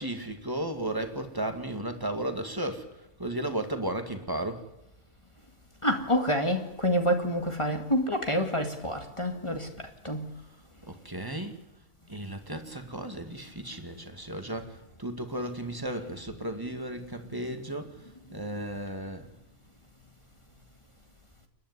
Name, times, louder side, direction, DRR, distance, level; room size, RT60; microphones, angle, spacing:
voice 1, 0.0-4.7 10.9-11.5 12.1-19.3, right 1 dB, 15° right, 2.1 m, -34 dB
voice 2, 5.8-9.7 10.0-10.3, equal, 20° left, 2.1 m, -27 dB
29.0 x 11.0 x 9.8 m
omnidirectional pair, 1.7 m